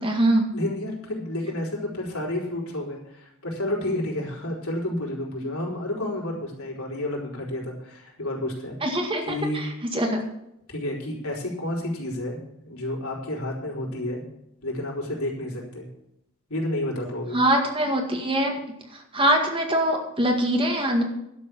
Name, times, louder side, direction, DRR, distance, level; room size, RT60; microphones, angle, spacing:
voice 1, 0.0-0.4 5.4-5.5 8.8-10.2 17.3-18.6 19.1-21.0, right 1 dB, 25° right, 3 dB, 1.9 m, -23 dB
voice 2, 0.5-8.8 9.3-9.6 10.7-12.4 12.6-14.2 14.6-15.9 16.5-17.4, left 1 dB, 75° left, -2 dB, 4.1 m, -30 dB
11.5 x 7.0 x 8.2 m, 0.80 s
head